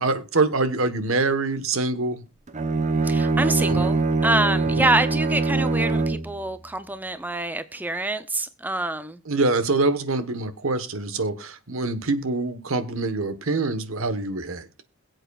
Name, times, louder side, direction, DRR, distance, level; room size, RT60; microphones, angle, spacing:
voice 1, 0.0-2.2 3.7-3.9 4.8-4.9 9.3-14.7, right 3 dB, 70° right, 1.2 m, -25 dB
Bowed string instrument, 2.5-6.3, right 3 dB, 35° right, 0.8 m, -23 dB
voice 2, 3.0-9.2, right 2 dB, 10° right, 0.5 m, -26 dB
22.0 x 7.9 x 2.3 m
head